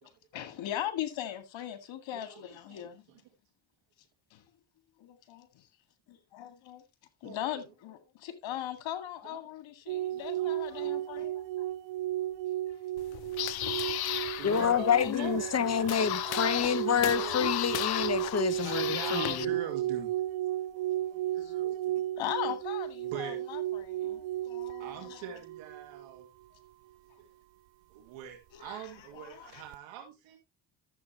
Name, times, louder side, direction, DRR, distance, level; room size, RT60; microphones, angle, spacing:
voice 1, 0.0-3.0 4.3-4.4 5.0-5.6 6.1-6.8 7.2-11.4 13.6-13.7 14.8-15.4 20.7-20.8 21.4-21.5 22.2-25.2 28.5-29.6, left 11 dB, 75° left, 2.0 m, -39 dB
voice 2, 2.1-3.2 7.2-7.6 9.2-9.4 10.1-11.0 14.4-14.9 15.2-17.5 18.6-20.1 21.1-22.0 23.0-23.4 24.8-26.3 27.2-27.3 27.9-30.4, right 9 dB, 90° right, 2.3 m, -44 dB
sound 1, 9.9-26.3 29.5-29.7, right 13 dB, 70° right, 0.5 m, -34 dB
sound 2, 13.0-19.4, left 14 dB, 55° left, 0.6 m, -35 dB
voice 3, 14.4-19.5, left 8 dB, 35° left, 1.0 m, -28 dB
12.0 x 7.6 x 2.9 m
cardioid pair, 80°, 46 cm